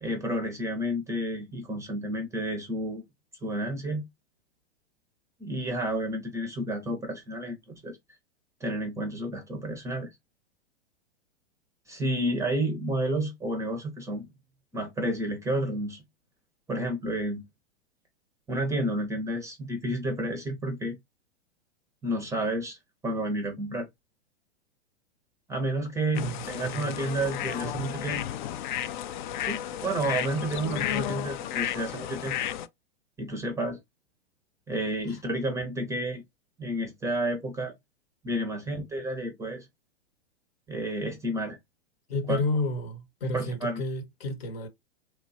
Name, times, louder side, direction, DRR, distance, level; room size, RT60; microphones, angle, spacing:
voice 1, 0.0-3.0 3.4-4.0 5.4-8.0 8.6-10.1 11.9-14.3 14.7-16.0 16.7-17.4 18.5-20.9 22.0-22.8 23.0-23.9 25.5-28.2 29.4-32.4 33.2-33.8 34.7-36.2 36.6-37.7 38.2-39.7 40.7-41.6 42.3-42.4 43.3-43.8, right 1 dB, 10° right, 0.6 m, -30 dB
voice 2, 26.1-27.1 27.6-28.0 35.1-35.2 42.1-44.7, left 2 dB, 65° left, 1.0 m, -32 dB
sound 1, 26.1-32.7, left 11 dB, 45° left, 0.4 m, -33 dB
3.1 x 2.2 x 2.6 m
figure-of-eight pair, 105°, 33 cm